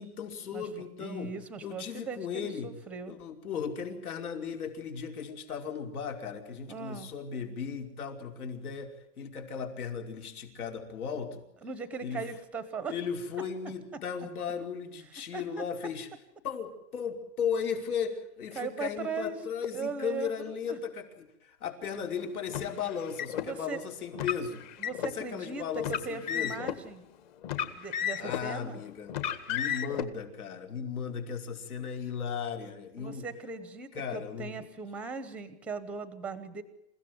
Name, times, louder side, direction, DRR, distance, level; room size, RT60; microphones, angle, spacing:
voice 1, 0.0-1.3 1.6-2.7 3.1-11.4 12.0-12.2 12.9-16.1 16.4-24.6 25.0-26.7 28.2-29.1 29.5-33.3 33.9-34.5, left 7 dB, 70° left, 4 dB, 5.2 m, -36 dB
voice 2, 1.0-3.2 6.7-7.1 11.6-13.0 13.9-14.0 15.0-15.6 18.5-19.4 19.7-20.8 23.4-23.8 24.8-27.0 27.7-28.8 33.0-36.6, right 5 dB, 5° right, 13 dB, 0.8 m, -39 dB
Car, 22.5-23.5 24.1-25.2 25.8-26.8 27.4-28.5 29.1-30.0, left 9 dB, 30° left, 1.7 m, -33 dB
28.5 x 16.5 x 9.4 m, 0.82 s
hypercardioid pair, 170°, 45 cm